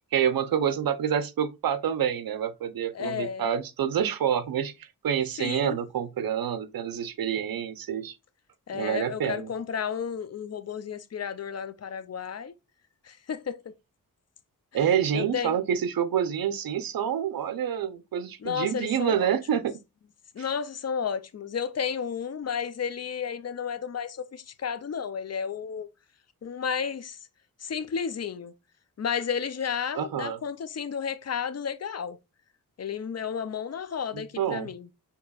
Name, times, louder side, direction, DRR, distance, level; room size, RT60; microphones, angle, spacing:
voice 1, 0.1-8.1 8.7-9.5 14.7-19.8 20.4-20.5 30.0-30.4 34.1-34.7, right 9 dB, 75° right, 0.7 m, -27 dB
voice 2, 2.9-3.5 5.4-5.8 8.7-12.5 13.0-13.6 15.1-15.6 18.4-19.4 20.3-25.9 26.4-27.2 27.6-28.5 29.0-32.2 32.8-34.9, left 7 dB, 45° left, 0.5 m, -32 dB
6.7 x 2.9 x 2.3 m
wide cardioid pair, 100°, 35 cm